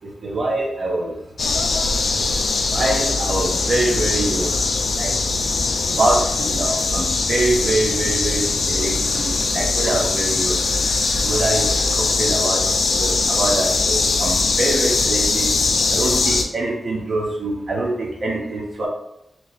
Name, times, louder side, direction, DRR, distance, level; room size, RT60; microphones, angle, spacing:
voice 1, 0.2-1.2 2.7-4.6 5.0-5.1 5.9-10.6 11.2-11.6 11.9-12.6 12.9-15.5 15.9-18.9, right 2 dB, 50° right, -2 dB, 0.8 m, -24 dB
sound 1, 1.4-16.4, left 3 dB, 55° left, 0.4 m, -21 dB
3.3 x 2.9 x 4.1 m, 0.81 s
wide cardioid pair, 170°, 0 cm